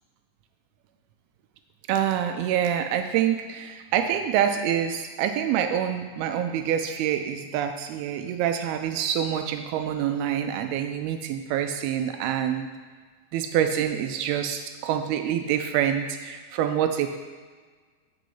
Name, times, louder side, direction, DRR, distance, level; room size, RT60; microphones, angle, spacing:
voice 1, 1.9-12.7 13.3-17.2, right 9 dB, 85° right, 7 dB, 2.5 m, -26 dB
9.1 x 6.1 x 5.6 m, 1.5 s
omnidirectional pair, 4.4 m